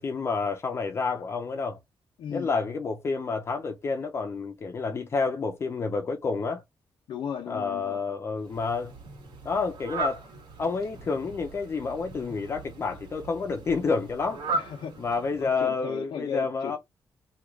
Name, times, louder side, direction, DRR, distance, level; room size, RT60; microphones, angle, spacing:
voice 1, 0.0-1.8 2.3-6.6 7.5-8.9 9.4-10.2 10.6-14.4 15.0-16.8, left 4 dB, 35° left, 0.5 m, -29 dB
voice 2, 2.2-2.5 7.1-8.0 14.5-14.9 15.4-16.8, left 8 dB, 90° left, 0.7 m, -36 dB
Fowl, 8.4-15.8, right 3 dB, 80° right, 1.5 m, -38 dB
3.0 x 2.4 x 3.5 m
wide cardioid pair, 175°, 8 cm